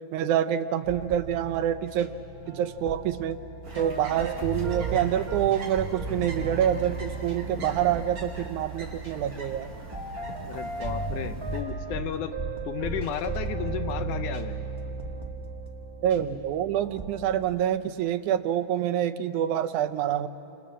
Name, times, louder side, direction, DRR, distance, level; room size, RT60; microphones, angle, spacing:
voice 1, 0.1-2.1 2.5-3.4 3.8-9.7 16.0-20.3, right 10 dB, 80° right, 9 dB, 2.2 m, -26 dB
sound 1, 0.8-17.6, right 3 dB, 15° right, 0.9 m, -36 dB
sound 2, 3.6-11.6, right 2 dB, 50° right, 5.5 m, -42 dB
voice 2, 10.4-12.3 12.7-14.6, left 9 dB, 85° left, 9 dB, 2.5 m, -33 dB
29.0 x 26.5 x 7.5 m, 3.0 s
omnidirectional pair, 3.5 m